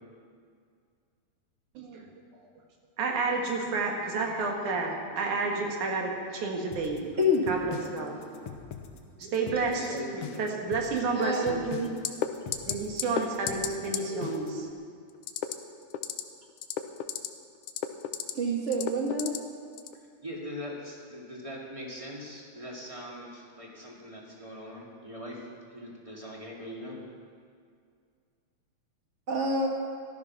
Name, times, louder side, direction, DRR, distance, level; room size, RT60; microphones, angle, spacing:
voice 1, 1.7-2.1 3.0-7.2 7.5-8.6 9.2-11.6 12.4-14.7, right 3 dB, 75° right, 1 dB, 3.1 m, -31 dB
sound 1, 6.7-14.6, left 8 dB, 65° left, 1.6 m, -43 dB
voice 2, 9.7-10.5 20.2-27.0, left 1 dB, 15° right, -3 dB, 1.7 m, -41 dB
voice 3, 11.2-11.9 18.3-19.3 29.3-29.7, left 1 dB, 30° right, 0 dB, 1.4 m, -27 dB
sound 2, 12.0-12.3 12.5-12.7 13.0-13.2 13.5-13.7 13.9-14.0 15.2-15.5 15.9-16.2 16.6-17.3 17.6-18.3 18.7-19.4 19.8-19.9, left 11 dB, 90° left, 2.2 m, -31 dB
14.5 x 12.5 x 5.9 m, 2.2 s
omnidirectional pair, 3.5 m